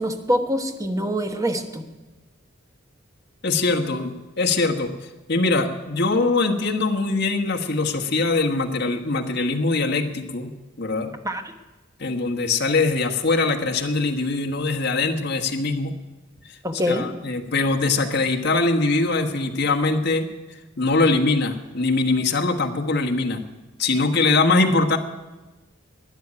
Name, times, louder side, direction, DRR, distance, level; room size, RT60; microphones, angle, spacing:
voice 1, 0.0-1.9 11.2-11.4 16.6-17.1, equal, 15° right, 6 dB, 1.2 m, -24 dB
voice 2, 3.4-4.9 5.3-10.5 10.8-11.1 12.0-15.9 16.9-20.3 20.8-23.4 23.8-25.0, left 3 dB, 60° left, 4 dB, 1.5 m, -22 dB
12.5 x 10.0 x 9.9 m, 1.1 s
head